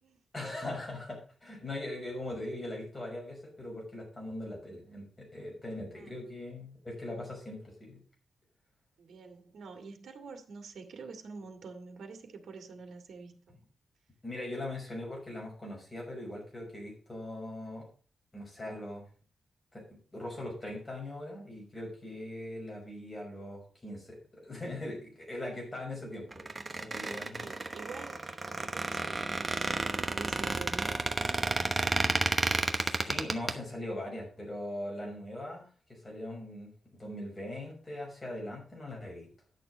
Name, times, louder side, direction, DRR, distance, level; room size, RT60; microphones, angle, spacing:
voice 1, 0.3-8.0 14.2-17.9 18.3-19.0 19.7-26.5 26.8-27.5 32.8-35.6 35.9-39.3, left 1 dB, 20° left, -2 dB, 6.0 m, -40 dB
voice 2, 9.0-13.6 27.4-28.2 28.5-32.0, right 4 dB, 75° right, 5 dB, 2.1 m, -47 dB
Squeak, 26.3-33.5, right 3 dB, 25° right, 1.1 m, -31 dB
10.5 x 6.8 x 5.2 m, 0.40 s
wide cardioid pair, 140°, 0 cm